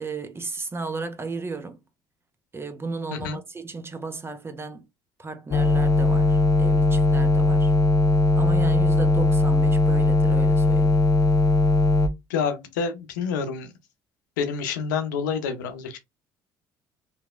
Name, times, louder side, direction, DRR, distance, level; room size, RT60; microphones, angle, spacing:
voice 1, 0.0-1.8 2.5-4.8 5.2-7.7 8.4-11.0, right 3 dB, 25° right, 0.7 m, -34 dB
sound 1, 5.5-12.1, left 2 dB, 30° left, 0.5 m, -19 dB
voice 2, 12.3-13.7 14.4-16.0, left 6 dB, 90° left, 0.6 m, -28 dB
2.9 x 2.6 x 2.3 m
hypercardioid pair, 65°, 10 cm